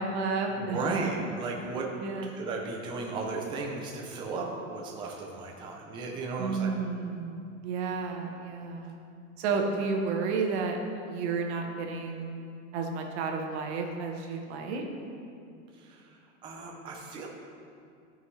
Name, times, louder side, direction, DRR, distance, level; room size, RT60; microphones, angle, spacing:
voice 1, 0.0-0.8 2.0-2.3 6.4-8.9 9.4-12.4 12.7-14.9, right 4 dB, 55° right, 3 dB, 1.1 m, -31 dB
voice 2, 0.6-1.9 2.3-6.8 15.7-17.3, right 3 dB, 15° right, 0 dB, 0.4 m, -35 dB
12.5 x 5.5 x 3.1 m, 2.5 s
supercardioid pair, 165°, 39 cm